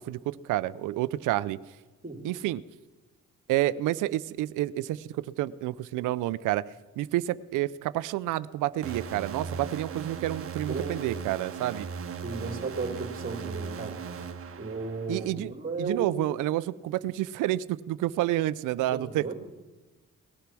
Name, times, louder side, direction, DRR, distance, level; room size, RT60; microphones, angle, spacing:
voice 1, 0.0-1.6 2.2-2.6 3.5-6.6 7.0-11.9 15.1-15.5 15.8-19.3, right 15 dB, 90° right, 17 dB, 0.6 m, -29 dB
sound 1, 8.8-15.3, right 6 dB, 45° right, 1.3 m, -38 dB
voice 2, 10.7-11.2 12.2-13.9 14.6-16.3 18.9-19.3, right 4 dB, 30° right, 3 dB, 3.1 m, -34 dB
19.0 x 11.5 x 6.1 m, 1.2 s
cardioid pair, 90°, 30 cm